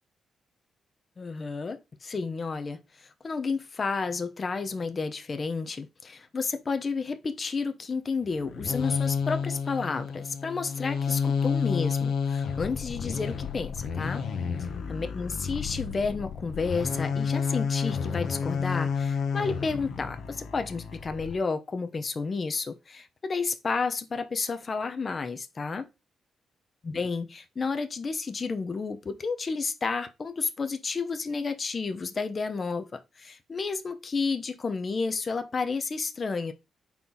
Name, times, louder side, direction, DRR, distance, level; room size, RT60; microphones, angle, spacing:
voice 1, 1.2-14.2 14.9-25.9 26.8-36.5, left 4 dB, 35° left, 0.8 m, -31 dB
sound 1, 8.3-21.4, left 6 dB, 75° left, 1.1 m, -30 dB
4.5 x 3.9 x 5.6 m
cardioid pair, 120°, 0 cm